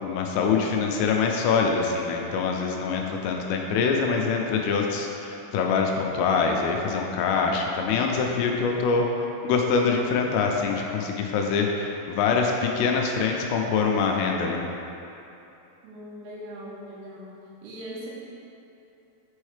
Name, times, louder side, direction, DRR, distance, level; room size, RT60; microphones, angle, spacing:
voice 1, 0.0-9.1 9.4-14.6, left 5 dB, 85° left, 1 dB, 3.0 m, -24 dB
voice 2, 3.3-3.6 15.8-17.3 17.6-18.1, equal, 80° right, -5 dB, 3.6 m, -40 dB
6.3 x 6.3 x 3.2 m, 2.8 s
omnidirectional pair, 6.0 m